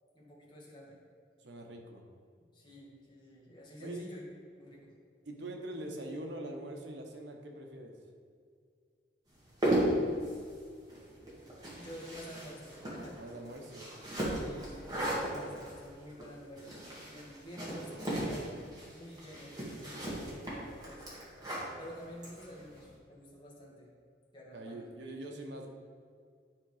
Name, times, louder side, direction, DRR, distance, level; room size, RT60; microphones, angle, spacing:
voice 1, 0.1-1.0 2.5-4.2 4.6-4.9 11.8-13.2 14.3-16.8 17.0-18.5 18.9-21.1 21.8-23.9 24.3-25.3, equal, 25° left, -4 dB, 1.8 m, -49 dB
voice 2, 1.4-2.0 3.8-4.1 5.2-8.0 13.2-14.0 24.5-25.7, right 1 dB, 85° right, 2 dB, 1.1 m, -43 dB
sound 1, 9.4-22.9, right 1 dB, 20° right, 1.9 m, -36 dB
10.5 x 3.8 x 4.9 m, 2.2 s
head